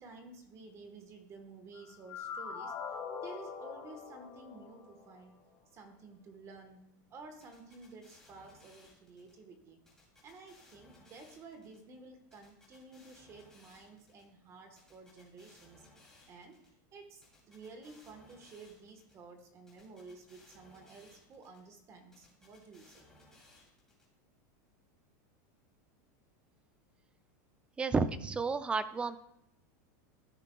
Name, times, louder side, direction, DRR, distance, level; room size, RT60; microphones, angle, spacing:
voice 1, 0.0-2.7 3.2-5.4 5.7-9.8 10.2-15.9 16.3-16.6 16.9-23.1, right 3 dB, 30° right, 5 dB, 1.2 m, -52 dB
sound 1, 1.7-5.3, left 6 dB, 30° left, 1.4 m, -43 dB
sound 2, 7.4-9.3 9.9-11.8 12.3-14.2 14.8-16.7 17.2-19.1 19.7-21.6 22.1-24.0, left 2 dB, 5° left, 2.7 m, -62 dB
voice 2, 27.8-29.2, right 4 dB, 10° right, 12 dB, 0.4 m, -31 dB
14.0 x 5.7 x 2.3 m, 0.81 s
supercardioid pair, 150°, 10 cm